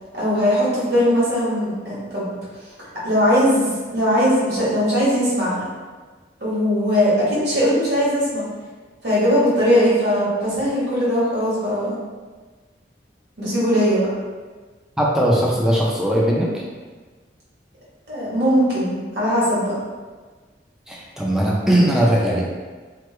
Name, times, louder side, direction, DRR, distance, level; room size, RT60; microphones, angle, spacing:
voice 1, 0.2-2.4 3.0-5.6 6.4-8.4 9.0-11.9 13.4-14.1 18.1-19.7, equal, 65° right, -8 dB, 1.3 m, -19 dB
voice 2, 15.0-16.6 20.9-22.5, right 1 dB, 5° right, -4 dB, 0.5 m, -19 dB
3.0 x 2.2 x 3.3 m, 1.4 s
head